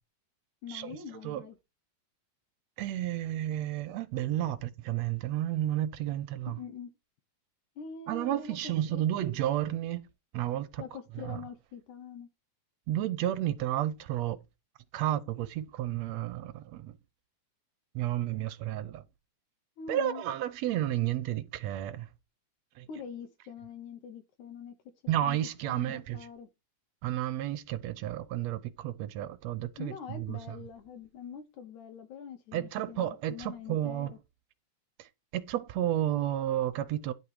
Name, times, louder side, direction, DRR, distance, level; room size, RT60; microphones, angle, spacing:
voice 1, 0.6-1.6 6.5-6.9 7.8-9.0 10.8-12.3 19.8-20.2 22.9-24.7 25.2-25.4 25.7-26.5 29.8-34.2, left 6 dB, 80° left, 2.5 m, -44 dB
voice 2, 2.8-6.6 8.1-10.0 10.3-10.8 11.2-11.4 12.9-14.4 14.9-17.0 18.0-19.0 19.9-22.1 22.8-22.9 25.1-26.3 27.0-30.6 32.5-34.1 35.0-37.1, right 12 dB, 70° right, 1.8 m, -32 dB
11.0 x 5.4 x 4.8 m
omnidirectional pair, 3.4 m